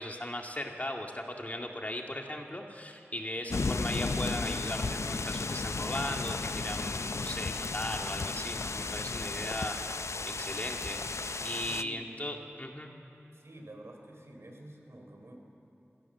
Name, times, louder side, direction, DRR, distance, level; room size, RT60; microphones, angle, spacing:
voice 1, 0.0-9.8 10.3-11.0 11.4-12.9, left 1 dB, 30° left, 2 dB, 2.1 m, -38 dB
sound 1, 3.5-11.8, left 3 dB, 80° left, 0.5 m, -34 dB
voice 2, 11.6-12.3 13.3-15.4, right 1 dB, 65° right, 2 dB, 3.6 m, -49 dB
26.0 x 16.5 x 7.3 m, 3.0 s
wide cardioid pair, 45°, 5 cm